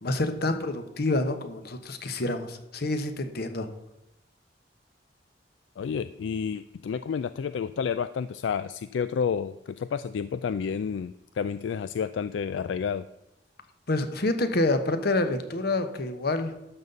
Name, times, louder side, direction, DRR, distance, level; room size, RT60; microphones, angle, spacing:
voice 1, 0.0-3.7 13.9-16.5, left 2 dB, 60° left, 8 dB, 1.0 m, -27 dB
voice 2, 5.8-13.1, left 6 dB, 80° left, 14 dB, 0.3 m, -30 dB
12.0 x 4.1 x 7.8 m, 0.92 s
head